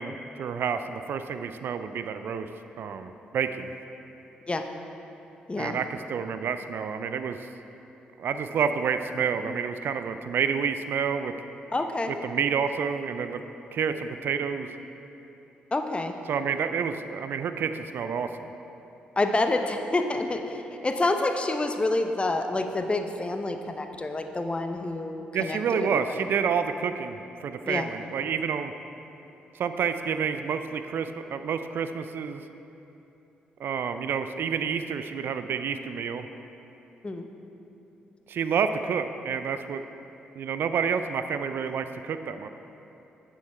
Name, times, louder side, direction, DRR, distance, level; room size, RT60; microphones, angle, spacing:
voice 1, 0.0-2.5 2.8-3.7 5.6-7.5 8.2-11.3 12.2-13.4 13.7-14.7 16.3-18.5 25.3-27.2 27.4-28.7 29.5-32.4 33.6-36.3 38.3-39.8 40.4-42.5, right 6 dB, 60° right, 9 dB, 0.4 m, -29 dB
voice 2, 11.7-12.1 15.7-16.1 19.2-25.6 27.6-27.9 37.0-37.3, left 2 dB, 25° left, 6 dB, 0.8 m, -28 dB
8.9 x 7.1 x 4.5 m, 3.0 s
hypercardioid pair, 40°, 4 cm